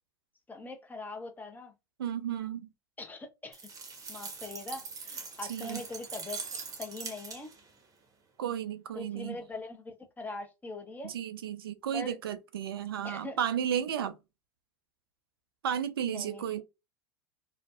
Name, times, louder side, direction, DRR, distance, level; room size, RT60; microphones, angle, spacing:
voice 1, 0.5-1.7 3.0-3.6 4.1-6.4 6.8-7.5 8.9-11.1 11.9-12.2 13.0-13.4 16.1-16.6, left 3 dB, 15° left, 0.8 m, -42 dB
voice 2, 2.0-2.7 5.5-5.8 8.4-9.4 11.0-14.2 15.6-16.6, right 9 dB, 75° right, 0.4 m, -33 dB
sound 1, 3.5-7.7, right 4 dB, 30° right, 0.8 m, -42 dB
2.5 x 2.2 x 2.3 m
hypercardioid pair, 80°, 12 cm